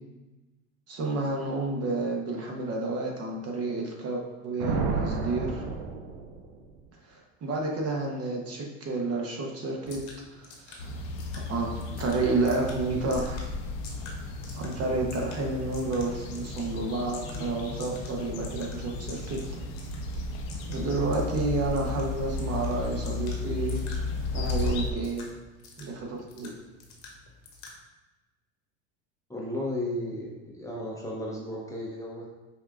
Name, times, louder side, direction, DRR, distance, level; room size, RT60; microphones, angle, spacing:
voice 1, 0.9-5.6 7.0-10.0 10.3-10.9 11.5-11.7 12.0-13.5 14.6-19.4 20.7-23.8 24.3-25.3 25.8-26.5, right 3 dB, 40° right, 0 dB, 0.9 m, -30 dB
Thunder, 4.6-6.8, right 4 dB, 80° right, 0.7 m, -31 dB
sound 1, 9.8-27.8, left 3 dB, 50° left, 1.1 m, -50 dB
sound 2, 10.8-24.9, left 3 dB, 70° left, 0.7 m, -34 dB
voice 2, 29.3-32.3, left 1 dB, 10° left, -4 dB, 0.7 m, -34 dB
5.5 x 2.5 x 2.4 m, 1.1 s
hypercardioid pair, 90°, 37 cm